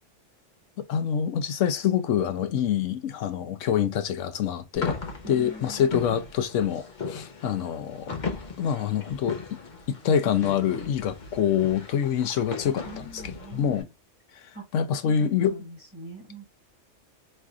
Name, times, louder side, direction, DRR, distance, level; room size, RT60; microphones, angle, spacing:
voice 1, 0.8-5.0 5.3-8.2 8.6-9.6 9.9-13.9 14.7-15.6, left 8 dB, 85° left, 1.0 m, -26 dB
sound 1, 4.7-13.8, left 4 dB, 40° left, 1.0 m, -37 dB
voice 2, 5.2-5.9 12.8-13.9 14.5-14.6 15.0-16.4, right 2 dB, 10° right, 2.1 m, -43 dB
3.6 x 3.3 x 2.3 m
omnidirectional pair, 1.3 m